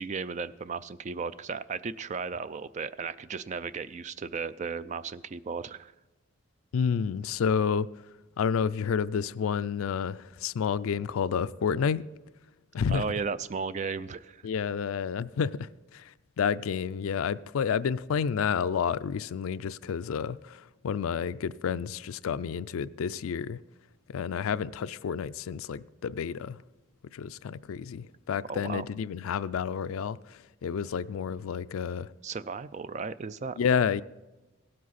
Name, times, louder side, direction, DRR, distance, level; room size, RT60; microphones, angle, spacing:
voice 1, 0.0-5.9 12.9-14.4 28.5-28.8 32.2-33.6, right 5 dB, 35° right, 0.3 m, -35 dB
voice 2, 6.7-7.9 8.4-12.0 12.7-13.0 14.4-23.6 24.1-26.6 27.1-32.1 33.6-34.0, left 7 dB, 75° left, 0.4 m, -30 dB
17.5 x 7.6 x 4.1 m
head